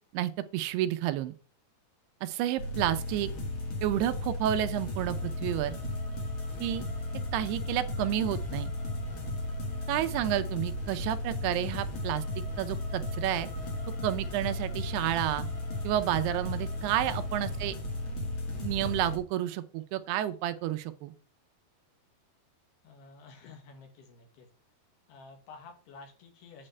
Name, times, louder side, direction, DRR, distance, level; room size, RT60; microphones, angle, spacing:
voice 1, 0.1-1.3 2.2-3.3 3.8-5.8 6.6-6.9 7.3-8.7 9.9-13.5 14.0-15.5 15.8-17.8 18.5-21.1, right 12 dB, 80° right, 2.6 m, -30 dB
sound 1, 2.6-19.2, left 1 dB, 55° left, 1.5 m, -35 dB
voice 2, 22.8-24.5 25.1-26.7, left 4 dB, 75° left, 3.6 m, -51 dB
8.8 x 7.0 x 3.3 m
omnidirectional pair, 4.7 m